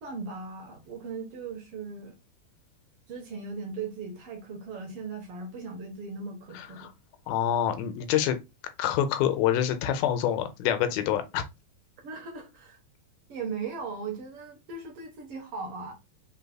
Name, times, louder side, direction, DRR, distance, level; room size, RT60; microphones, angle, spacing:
voice 1, 0.0-2.2 3.1-6.9 12.0-12.8 13.3-15.9, right 4 dB, 60° right, 1.6 m, -38 dB
voice 2, 6.5-6.9 7.3-8.4 8.8-11.4, left 10 dB, 85° left, 2.6 m, -26 dB
5.5 x 4.0 x 2.3 m
omnidirectional pair, 4.1 m